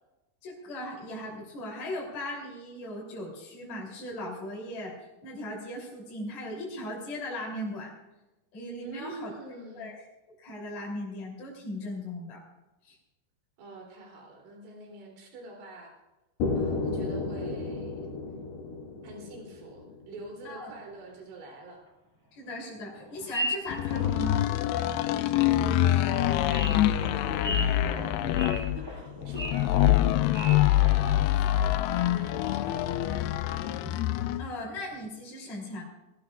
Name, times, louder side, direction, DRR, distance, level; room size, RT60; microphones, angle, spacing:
voice 1, 0.4-5.0 5.2-7.9 8.5-9.3 9.7-10.0 10.4-12.4 12.8-13.0 20.4-20.7 22.3-24.4 24.9-25.1 34.4-35.8, left 1 dB, 40° left, -4 dB, 4.1 m, -38 dB
voice 2, 8.8-9.9 13.6-15.9 16.6-18.1 19.0-21.8 25.2-33.8, right 2 dB, 80° right, 0 dB, 5.6 m, -46 dB
sound 1, 16.4-20.3, left 3 dB, 65° left, 4.0 m, -33 dB
sound 2, 21.1-21.2 21.5-21.6 22.5-22.6 23.0-24.3 24.8-24.9 25.6-25.7 26.1-31.3 31.5-31.8 32.3-32.9 33.2-34.3 34.7-35.0, right 1 dB, 25° right, 0.5 m, -38 dB
sound 3, 23.7-34.5, left 13 dB, 85° left, 2.2 m, -25 dB
20.0 x 17.5 x 2.4 m, 1.0 s
omnidirectional pair, 5.2 m